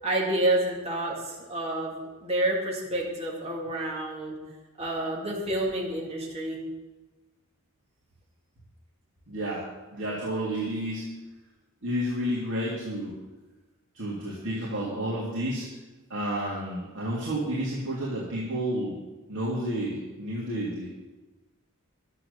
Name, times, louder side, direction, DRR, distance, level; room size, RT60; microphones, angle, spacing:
voice 1, 0.0-1.9 2.2-4.4 4.8-6.6, right 1 dB, 30° right, -3 dB, 2.4 m, -29 dB
voice 2, 9.3-9.6 9.9-11.1 11.8-13.1 13.9-15.6 16.1-19.0 19.3-20.9, right 1 dB, 60° right, -7 dB, 2.8 m, -30 dB
11.5 x 8.4 x 6.7 m, 1.2 s
head